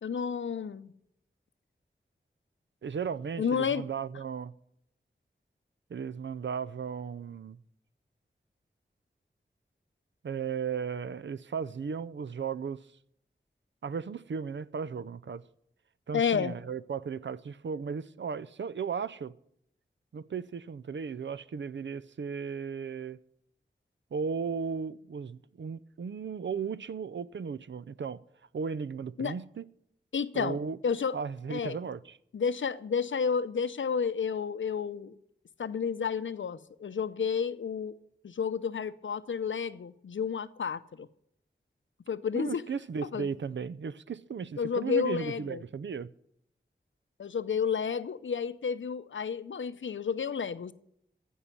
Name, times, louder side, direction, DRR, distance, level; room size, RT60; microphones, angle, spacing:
voice 1, 0.0-0.9 3.4-3.8 16.1-16.6 29.2-29.4 30.1-31.2 31.5-31.8 32.3-35.2 35.6-37.9 38.2-41.1 42.1-42.6 43.1-43.3 44.6-45.6 47.2-50.7, left 6 dB, 85° left, 0.6 m, -31 dB
voice 2, 2.8-4.5 5.9-7.6 10.2-12.9 13.8-15.4 16.1-19.3 20.1-23.2 24.1-28.2 28.5-29.6 30.3-30.8 31.1-32.2 42.3-46.1, right 6 dB, 75° right, 0.5 m, -35 dB
15.0 x 5.5 x 9.8 m
wide cardioid pair, 55°, 19 cm